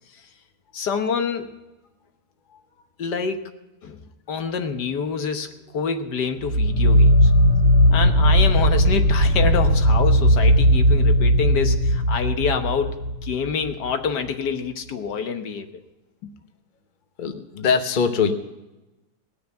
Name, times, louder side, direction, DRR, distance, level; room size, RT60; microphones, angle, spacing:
voice 1, 0.7-1.5 3.0-3.5 3.8-4.0 4.3-7.3 7.9-15.7 16.2-16.3, left 6 dB, 80° left, 7 dB, 1.7 m, -27 dB
sound 1, 6.4-13.7, equal, 65° right, 2.8 m, -17 dB
voice 2, 17.2-18.3, left 6 dB, 35° left, 7 dB, 1.0 m, -22 dB
18.5 x 6.7 x 9.0 m, 1.0 s
omnidirectional pair, 1.8 m